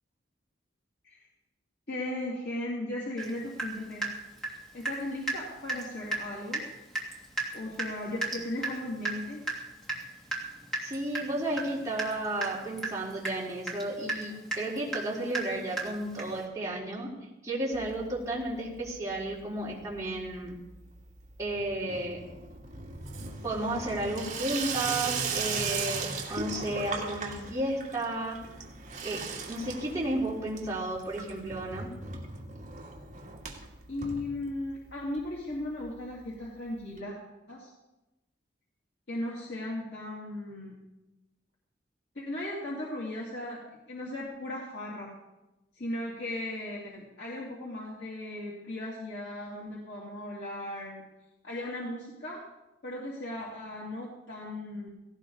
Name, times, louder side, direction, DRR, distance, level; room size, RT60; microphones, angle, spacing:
voice 1, 1.9-4.0 4.7-6.6 7.5-9.4 33.9-37.2 37.5-37.7 39.1-40.8 42.1-43.6 43.9-45.1 45.7-51.0 51.4-52.4 52.8-54.9, left 1 dB, 60° left, -5 dB, 3.0 m, -37 dB
Water tap faucet / Drip, 3.2-3.3 3.6-5.0 5.3-5.4 5.7-5.9 6.1-6.2 6.5-6.7 6.9-16.4, right 3 dB, 5° left, 2.9 m, -35 dB
voice 2, 10.8-17.1 17.4-20.6 21.4-22.2 23.4-28.4 29.0-31.9, right 1 dB, 15° right, -6 dB, 4.1 m, -33 dB
Water tap faucet / Sink (filling or washing), 17.7-18.5 18.8-19.3 19.6-34.9 35.2-35.3 35.5-35.6 35.8-35.9 37.0-37.1, right 4 dB, 40° right, 2.5 m, -38 dB
18.0 x 17.5 x 4.1 m, 1.0 s
head